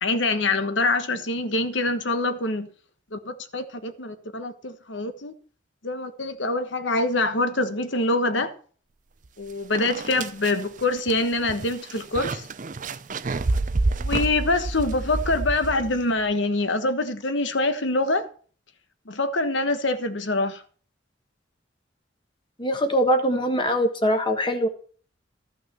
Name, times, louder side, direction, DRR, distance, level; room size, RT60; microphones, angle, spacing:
voice 1, 0.0-2.7 3.1-5.3 5.8-8.5 9.4-12.4 14.0-18.3 19.1-20.6, left 2 dB, 75° left, 1.3 m, -25 dB
sound 1, 9.2-9.3 9.7-16.1, right 3 dB, 40° right, 0.5 m, -29 dB
voice 2, 22.6-24.7, equal, 25° left, 1.3 m, -22 dB
13.5 x 6.0 x 6.8 m
head